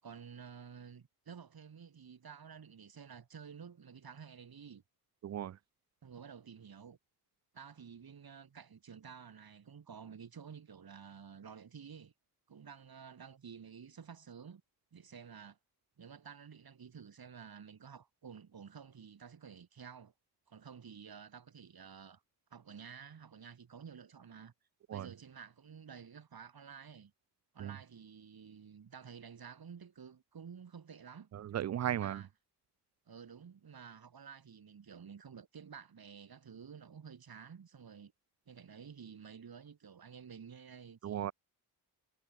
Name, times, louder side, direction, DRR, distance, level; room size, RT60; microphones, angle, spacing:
voice 1, 0.0-4.8 6.0-7.0 7.5-12.1 12.5-14.6 14.9-15.6 16.0-20.1 20.5-22.2 22.5-24.5 24.9-27.1 27.5-31.3 31.9-32.3 33.1-38.1 38.5-41.3, right 7 dB, 60° right, 5.7 m, -51 dB
voice 2, 5.2-5.6 24.9-25.1 27.6-27.8 31.3-32.2 41.0-41.3, right 11 dB, 40° right, 0.4 m, -36 dB
cardioid pair, 80°, 41 cm